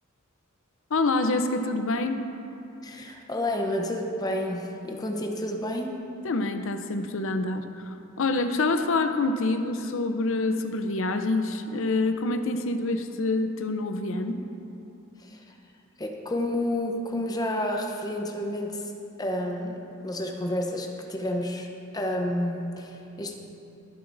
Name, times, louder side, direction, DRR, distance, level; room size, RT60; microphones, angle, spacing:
voice 1, 0.9-2.2 6.2-14.4, left 2 dB, 65° left, 8 dB, 0.6 m, -26 dB
voice 2, 2.8-5.9 15.2-15.4 16.0-18.9 19.2-21.7 21.9-23.4, left 1 dB, 20° left, 2 dB, 0.8 m, -30 dB
21.5 x 7.9 x 2.6 m, 2.8 s
head